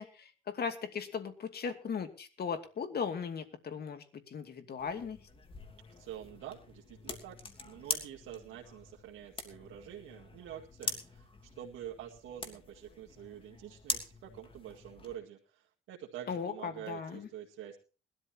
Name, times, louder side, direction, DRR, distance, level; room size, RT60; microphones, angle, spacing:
voice 1, 0.0-5.2 16.3-17.3, left 6 dB, 55° left, 7 dB, 2.6 m, -38 dB
sound 1, 4.8-15.2, left 3 dB, 25° left, 3.0 m, -44 dB
voice 2, 6.0-7.4 7.6-11.3 11.5-17.8, right 10 dB, 90° right, -3 dB, 2.1 m, -47 dB
21.5 x 13.0 x 3.0 m, 0.34 s
cardioid pair, 90°, 20 cm